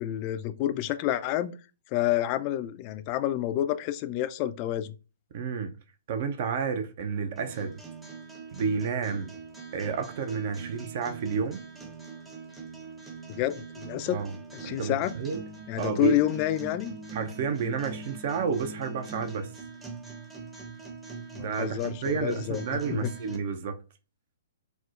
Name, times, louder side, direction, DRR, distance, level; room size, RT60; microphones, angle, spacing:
voice 1, 0.0-1.6 1.9-4.9 13.3-14.2 14.5-15.1 15.7-16.9 21.3-22.6 22.9-23.1, left 13 dB, 35° left, 0.3 m, -29 dB
voice 2, 5.3-5.7 6.1-7.8 8.5-9.3 9.7-11.6 14.1-14.3 14.6-15.4 15.8-16.2 17.1-19.5 21.4-23.8, right 6 dB, 50° right, 0.4 m, -30 dB
sound 1, 7.4-23.4, right 4 dB, 10° right, 0.6 m, -43 dB
4.2 x 2.0 x 2.4 m
figure-of-eight pair, 125°, 0 cm